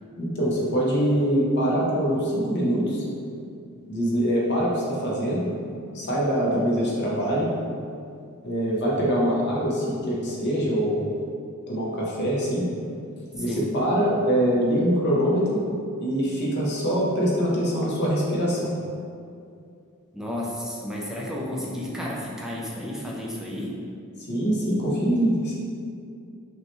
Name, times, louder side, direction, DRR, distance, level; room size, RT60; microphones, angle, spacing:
voice 1, 0.2-3.0 3.9-5.5 5.9-7.5 8.4-11.1 11.7-12.7 13.3-15.7 16.0-18.7 24.3-25.5, equal, 50° left, -5 dB, 0.8 m, -24 dB
voice 2, 13.4-13.7 20.1-23.8, left 1 dB, ahead, -4 dB, 0.5 m, -32 dB
5.4 x 2.2 x 3.0 m, 2.4 s
head